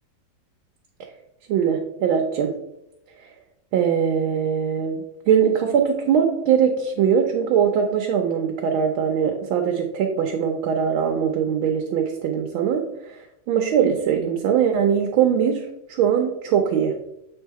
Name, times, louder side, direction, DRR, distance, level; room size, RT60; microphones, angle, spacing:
voice 1, 1.5-2.5 3.7-12.8 13.5-16.9, right 7 dB, 80° right, 2 dB, 1.5 m, -21 dB
7.2 x 3.4 x 4.6 m, 0.83 s
omnidirectional pair, 2.2 m